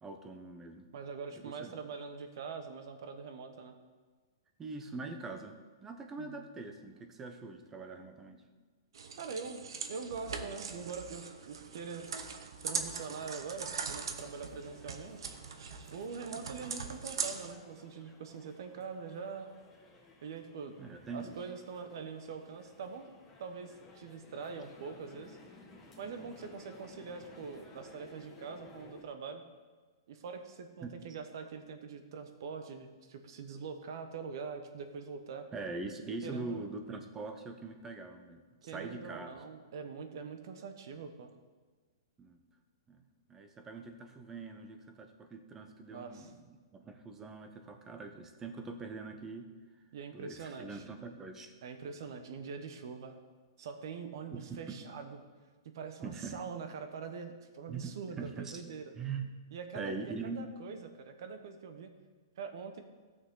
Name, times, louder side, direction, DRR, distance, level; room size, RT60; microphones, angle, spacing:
voice 1, 0.0-0.9 1.4-1.7 4.6-5.6 5.8-8.4 20.8-21.4 30.8-30.9 35.5-39.4 42.2-42.4 42.9-43.0 43.3-49.5 50.1-51.5 54.3-54.8 56.0-56.4 57.7-58.6 59.0-59.3 59.7-60.5, right 4 dB, 15° right, 6 dB, 0.8 m, -43 dB
voice 2, 0.9-3.8 6.2-6.5 9.2-9.6 9.9-12.1 12.6-15.4 15.9-19.5 20.2-20.8 21.1-23.1 23.4-25.4 26.0-29.5 30.1-35.5 36.2-36.6 38.6-41.3 45.9-46.3 49.9-50.8 51.6-53.2 53.6-55.2 55.7-58.9 59.5-61.9 62.4-62.8, right 5 dB, 60° right, 7 dB, 1.1 m, -43 dB
sound 1, 8.9-17.5, right 5 dB, 80° right, 0.9 m, -41 dB
sound 2, 13.8-29.0, left 3 dB, 10° left, 1.3 m, -58 dB
14.5 x 6.4 x 3.8 m, 1.4 s
hypercardioid pair, 150°, 2 cm